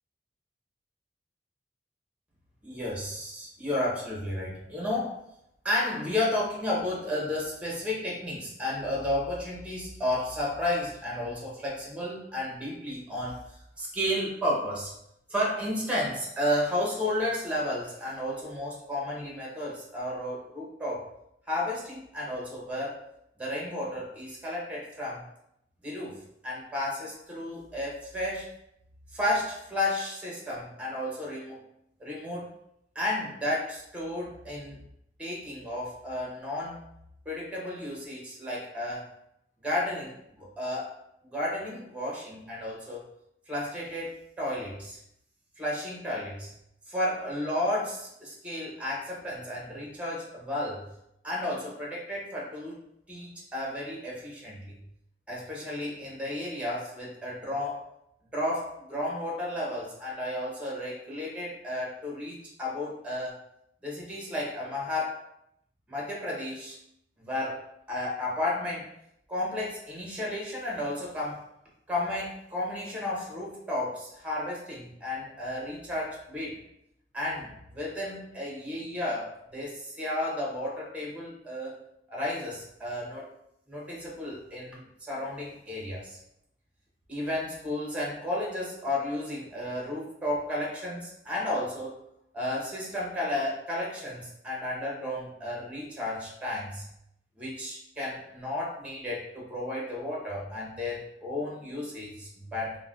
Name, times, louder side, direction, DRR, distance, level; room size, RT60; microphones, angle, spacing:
voice 1, 2.6-5.2 5.6-13.4 13.8-14.9 15.3-21.1 21.5-23.0 23.4-25.2 25.8-28.5 29.1-31.6 32.0-32.5 32.9-34.8 35.2-36.8 37.3-39.1 39.6-41.0 41.3-43.0 43.5-45.0 45.6-46.5 46.9-50.9 51.2-52.8 53.1-54.8 55.3-57.9 58.3-63.4 63.8-65.2 65.9-66.8 67.2-67.6 67.9-68.9 69.3-71.4 71.9-76.6 77.1-81.8 82.1-83.3 83.7-86.2 87.1-92.0 92.3-96.9 97.4-102.8, left 1 dB, 10° right, -3 dB, 0.7 m, -32 dB
2.4 x 2.1 x 3.6 m, 0.77 s
head